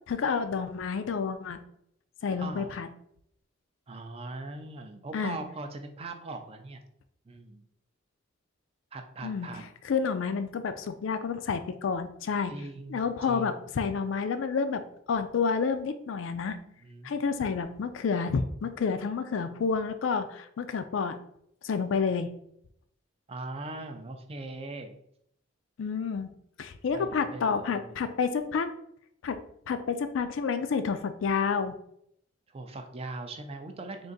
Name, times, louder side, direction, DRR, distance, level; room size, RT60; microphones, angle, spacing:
voice 1, 0.1-1.6 2.2-2.9 5.1-5.4 9.2-9.5 9.8-12.5 12.9-14.8 15.1-16.6 17.0-21.2 21.6-22.3 25.8-26.3 26.6-28.7 29.2-29.4 29.7-31.8, left 5 dB, 65° left, 9 dB, 0.4 m, -29 dB
voice 2, 2.4-2.7 3.9-6.8 7.3-7.6 8.9-9.7 12.5-13.6 16.8-17.1 23.3-25.0 26.9-28.0 32.5-34.1, right 2 dB, 30° right, 6 dB, 0.4 m, -40 dB
3.7 x 2.5 x 3.9 m, 0.72 s
head